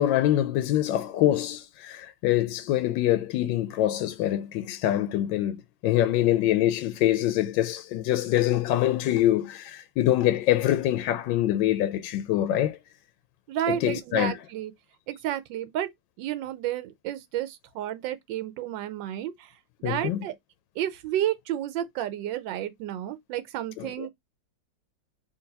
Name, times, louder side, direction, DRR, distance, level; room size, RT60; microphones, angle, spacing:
voice 1, 0.0-12.8 13.7-14.3 19.8-20.2 23.8-24.1, left 13 dB, 85° left, 1.3 m, -25 dB
voice 2, 13.5-14.7 15.1-15.9 16.2-19.5 19.8-20.3 20.8-24.1, right 12 dB, 85° right, 1.3 m, -31 dB
3.9 x 2.7 x 3.9 m
omnidirectional pair, 2.0 m